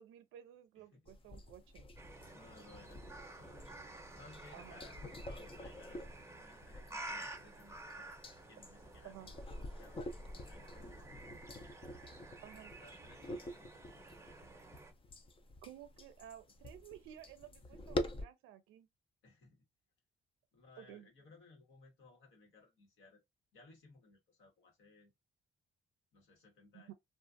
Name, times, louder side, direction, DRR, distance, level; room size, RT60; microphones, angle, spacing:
voice 1, 0.0-1.9 4.5-4.8 9.0-9.3 12.4-12.7 15.6-18.9 20.8-21.1 26.7-26.9, right 11 dB, 90° right, 0.4 m, -54 dB
sound 1, 1.1-18.2, left 1 dB, 25° left, 0.5 m, -47 dB
sound 2, 2.0-14.9, right 2 dB, 15° right, 0.7 m, -52 dB
voice 2, 2.3-3.5 4.1-8.2 8.5-10.1 10.5-11.5 12.7-13.9 17.6-17.8 19.2-19.6 20.5-23.2 23.5-25.1 26.1-26.9, left 3 dB, 80° left, 1.2 m, -61 dB
2.4 x 2.4 x 2.5 m
cardioid pair, 90°, 20 cm